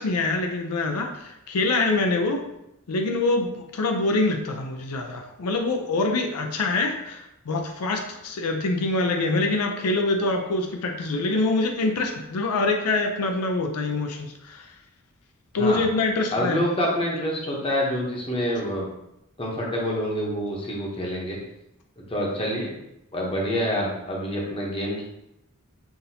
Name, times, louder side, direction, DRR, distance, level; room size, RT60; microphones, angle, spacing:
voice 1, 0.0-2.4 2.9-14.7 15.5-16.6, left 2 dB, 90° left, 4 dB, 0.5 m, -25 dB
voice 2, 16.3-18.9 19.4-21.4 22.1-22.7 23.1-25.0, equal, 25° left, -2 dB, 0.8 m, -27 dB
5.9 x 2.6 x 2.7 m, 0.85 s
head